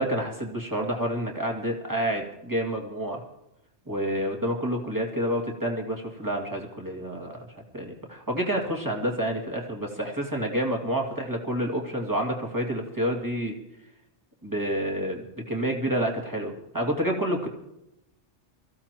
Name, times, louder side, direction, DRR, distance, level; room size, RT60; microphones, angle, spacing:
voice 1, 0.0-3.2 3.9-7.4 7.7-13.5 14.4-17.5, right 1 dB, 15° right, 0 dB, 2.3 m, -28 dB
24.0 x 15.0 x 3.0 m, 0.86 s
omnidirectional pair, 1.2 m